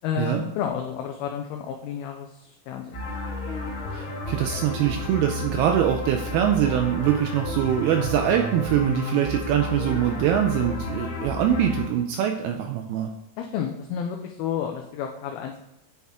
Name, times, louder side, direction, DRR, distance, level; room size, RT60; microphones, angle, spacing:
voice 1, 0.0-3.1 13.4-15.5, left 8 dB, 85° left, 3 dB, 2.1 m, -31 dB
sound 1, 2.9-11.8, left 2 dB, 60° left, 1.4 m, -32 dB
voice 2, 3.9-13.1, right 10 dB, 90° right, 4 dB, 2.2 m, -23 dB
9.3 x 4.2 x 3.6 m, 0.89 s
omnidirectional pair, 5.0 m